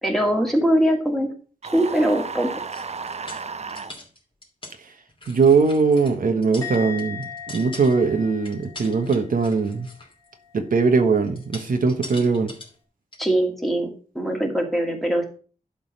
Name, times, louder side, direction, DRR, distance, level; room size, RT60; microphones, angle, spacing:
voice 1, 0.0-1.3 1.7-2.5 13.2-15.2, right 1 dB, ahead, 0 dB, 2.3 m, -22 dB
sound 1, 1.6-3.9, right 5 dB, 50° right, 0.7 m, -33 dB
sound 2, 2.7-4.8 5.1-6.1 6.4-8.1 8.4-10.3 11.2-12.7 13.1-13.2, left 2 dB, 35° left, 2.8 m, -42 dB
voice 2, 5.3-9.9 10.5-12.5, right 4 dB, 75° right, 5 dB, 1.3 m, -20 dB
Musical instrument, 6.6-10.0 10.3-10.7, left 7 dB, 20° left, 2.3 m, -38 dB
11.5 x 4.0 x 6.5 m, 0.39 s
wide cardioid pair, 125°, 15 cm